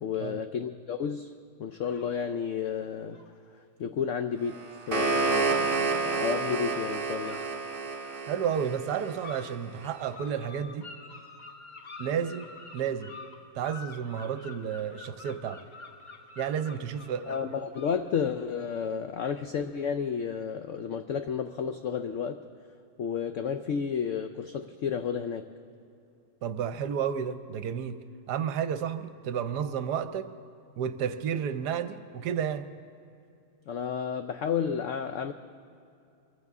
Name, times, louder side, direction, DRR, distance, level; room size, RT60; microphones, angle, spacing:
voice 1, 0.0-1.3 1.6-3.2 3.8-7.4 17.3-22.4 23.0-25.5 33.7-35.3, left 7 dB, 90° left, 8 dB, 0.6 m, -32 dB
sound 1, 1.8-2.2 3.1-3.4 6.3-6.5 7.2-8.3 8.9-9.5 9.8-18.3, left 4 dB, 35° left, 0.9 m, -48 dB
sound 2, 4.5-9.6, right 4 dB, 30° right, 1.6 m, -29 dB
voice 2, 8.3-10.9 12.0-12.5 12.7-13.1 13.5-15.6 16.4-17.5 26.4-28.0 28.3-30.3 30.8-32.7, right 8 dB, 70° right, 11 dB, 1.2 m, -31 dB
24.0 x 15.0 x 3.6 m, 2.5 s
omnidirectional pair, 1.9 m